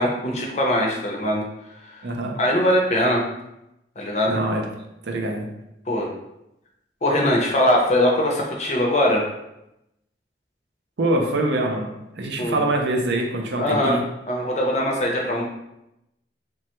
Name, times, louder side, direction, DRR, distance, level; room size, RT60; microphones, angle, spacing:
voice 1, 0.0-1.4 1.8-2.0 2.4-3.2 4.0-4.3 5.9-6.1 7.0-9.3 12.4-12.6 13.6-14.0 14.3-15.4, left 1 dB, 40° left, -1 dB, 0.5 m, -21 dB
voice 2, 2.0-2.3 4.3-4.6 5.0-5.5 11.0-14.0, right 1 dB, 70° right, 2 dB, 0.5 m, -24 dB
3.2 x 2.2 x 2.9 m, 0.86 s
head